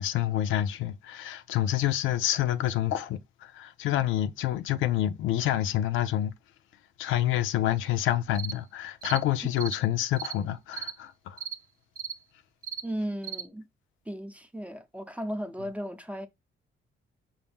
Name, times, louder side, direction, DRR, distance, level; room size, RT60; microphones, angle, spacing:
voice 1, 0.0-6.3 7.0-11.4, left 12 dB, 90° left, 0.5 m, -28 dB
sound 1, 8.3-8.6 9.0-9.2 9.6-9.8 10.2-10.4 10.7-11.0 11.4-11.6 12.0-12.2 12.6-12.9 13.2-13.4, right 7 dB, 45° right, 0.5 m, -36 dB
voice 2, 12.8-13.6 14.1-16.3, equal, 5° right, 0.7 m, -35 dB
5.5 x 2.7 x 3.4 m
cardioid pair, 90°, 20 cm